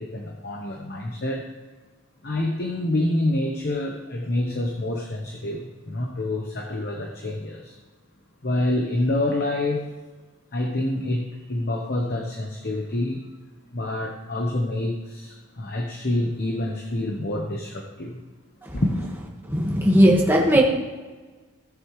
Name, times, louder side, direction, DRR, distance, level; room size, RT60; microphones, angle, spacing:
voice 1, 0.0-1.4 2.2-7.7 8.4-9.8 10.5-13.2 13.7-18.2 18.7-19.1, left 1 dB, 45° left, 1 dB, 1.0 m, -27 dB
voice 2, 19.5-20.6, equal, 10° right, -2 dB, 1.6 m, -17 dB
16.0 x 7.2 x 3.2 m, 1.3 s
head